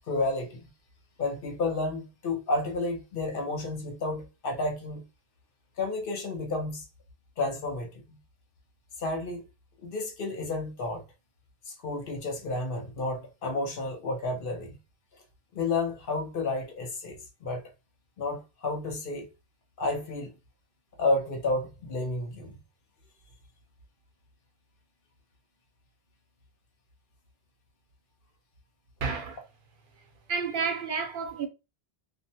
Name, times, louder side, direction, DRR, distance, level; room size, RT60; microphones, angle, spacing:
voice 1, 0.1-0.7 1.2-5.0 5.8-6.8 7.4-8.2 9.0-9.5 9.8-11.0 11.7-14.8 15.5-17.6 18.2-19.3 19.8-20.3 21.0-22.6, left 2 dB, 60° left, 0.9 m, -31 dB
voice 2, 29.0-29.4 30.3-31.5, right 5 dB, 60° right, 0.7 m, -30 dB
2.6 x 2.1 x 2.7 m
omnidirectional pair, 1.0 m